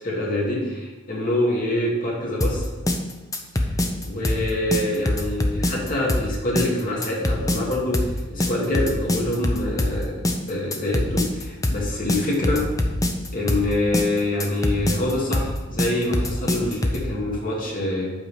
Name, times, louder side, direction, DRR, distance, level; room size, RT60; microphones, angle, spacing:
voice 1, 0.0-2.7 4.0-8.0 8.3-12.7 13.3-18.1, left 1 dB, 45° left, -4 dB, 2.5 m, -25 dB
sound 1, 2.4-17.1, left 1 dB, 15° left, 0.7 m, -24 dB
8.2 x 4.7 x 7.0 m, 1.2 s
head